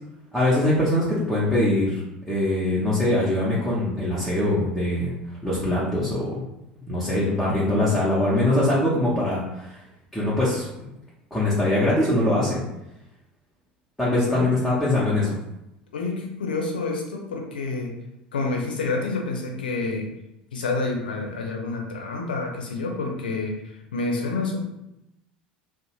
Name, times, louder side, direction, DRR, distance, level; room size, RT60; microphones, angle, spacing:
voice 1, 0.3-5.1 5.4-6.4 6.8-9.8 10.1-10.7 11.3-12.6 14.0-15.4, left 1 dB, ahead, -8 dB, 0.8 m, -22 dB
voice 2, 15.9-17.9 18.3-20.1 20.5-23.5 23.9-24.6, left 3 dB, 80° left, 1 dB, 0.5 m, -28 dB
2.6 x 2.0 x 2.9 m, 0.89 s
figure-of-eight pair, 75°, 5 cm